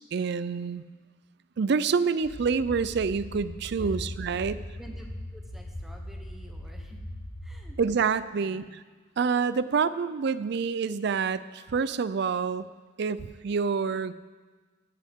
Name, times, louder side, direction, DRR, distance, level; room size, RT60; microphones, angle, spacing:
voice 1, 0.1-0.8 1.6-4.6 7.8-8.7 9.2-12.7 13.0-14.1, right 5 dB, 55° right, 15 dB, 0.4 m, -27 dB
sound 1, 2.2-7.7, left 1 dB, 30° left, 2.3 m, -39 dB
voice 2, 4.2-7.0 7.4-8.0 8.3-8.7, equal, ahead, 1 dB, 1.1 m, -51 dB
15.0 x 9.9 x 3.6 m, 1.4 s
head